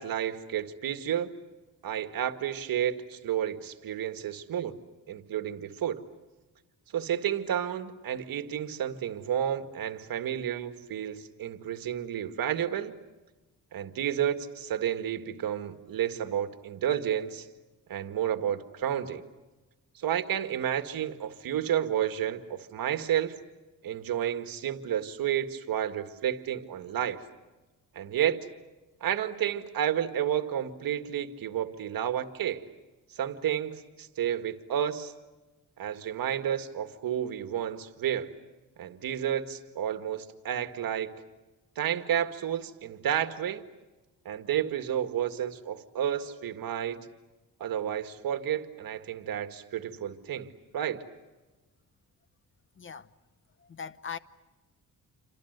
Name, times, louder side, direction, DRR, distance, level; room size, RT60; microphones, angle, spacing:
voice 1, 0.0-1.3 1.8-4.8 5.1-6.0 6.9-12.9 13.7-17.5 17.9-19.2 20.0-23.4 23.8-27.2 27.9-28.4 29.0-32.6 33.1-35.1 35.8-38.3 38.8-41.1 41.8-43.6 44.3-47.0 47.6-51.0, right 10 dB, 70° right, 1.9 m, -31 dB
voice 2, 52.8-53.1 53.7-54.2, left 7 dB, 35° left, 1.0 m, -39 dB
29.0 x 25.5 x 8.1 m
cardioid pair, 120°, 35 cm